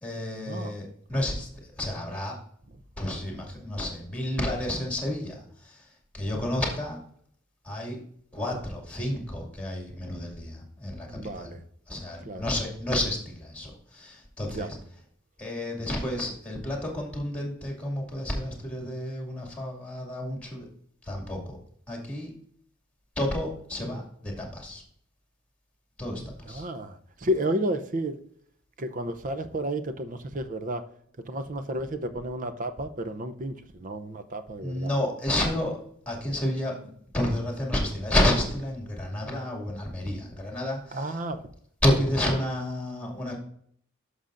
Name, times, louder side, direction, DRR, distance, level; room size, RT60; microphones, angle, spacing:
voice 1, 0.0-1.5 1.8-2.4 3.0-5.9 6.1-7.0 7.6-8.0 8.3-11.5 11.9-14.8 15.4-20.7 21.0-21.6 21.9-22.3 23.2-24.8 26.0-26.7 34.6-35.8 36.1-41.2 41.8-43.4, left 1 dB, 5° left, 0 dB, 2.3 m, -30 dB
voice 2, 11.1-11.6 12.3-12.4 14.5-14.7 26.2-28.2 28.8-30.8 31.3-34.9 40.9-41.4, right 1 dB, 40° right, 10 dB, 0.6 m, -32 dB
11.0 x 6.4 x 2.6 m, 0.64 s
head